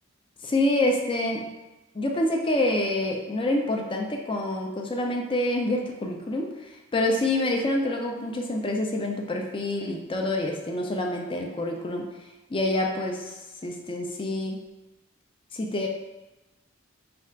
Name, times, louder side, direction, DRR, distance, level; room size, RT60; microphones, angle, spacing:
voice 1, 0.4-1.5 1.9-12.1 12.5-13.3 13.6-14.6 15.5-15.9, left 1 dB, 25° left, 1 dB, 0.5 m, -27 dB
3.4 x 2.5 x 4.3 m, 1.1 s
head